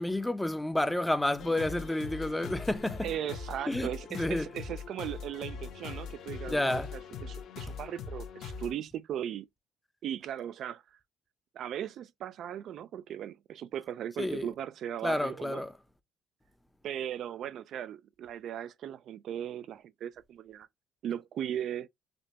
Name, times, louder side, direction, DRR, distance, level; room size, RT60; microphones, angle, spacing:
voice 1, 0.0-3.1 3.7-4.5 6.5-6.9 14.2-14.5 15.0-15.7, left 1 dB, 5° left, 0.5 m, -30 dB
sound 1, 1.4-8.7, left 6 dB, 60° left, 0.9 m, -41 dB
voice 2, 3.0-9.5 10.0-11.0 11.5-15.6 16.8-20.7 21.0-21.9, right 10 dB, 55° right, 0.3 m, -38 dB
5.1 x 2.2 x 2.7 m
cardioid pair, 120°, 0 cm